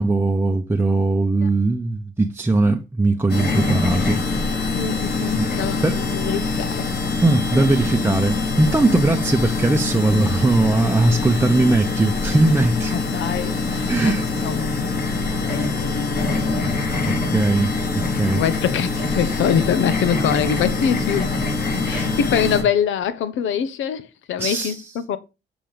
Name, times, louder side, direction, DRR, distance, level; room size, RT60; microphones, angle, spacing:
voice 1, 0.0-4.2 5.4-5.5 5.8-6.0 7.2-13.0 13.9-14.3 17.1-17.7 18.2-18.4 21.9-22.1 24.4-24.9, right 2 dB, 10° right, 0.7 m, -19 dB
sound 1, 3.3-22.6, left 3 dB, 50° left, 4.8 m, -24 dB
voice 2, 4.7-6.9 8.9-9.1 12.9-14.1 14.4-14.9 15.1-16.4 18.3-21.4 21.8-24.7 25.1-25.2, left 8 dB, 80° left, 1.0 m, -24 dB
7.6 x 5.0 x 5.1 m
cardioid pair, 90°, 20 cm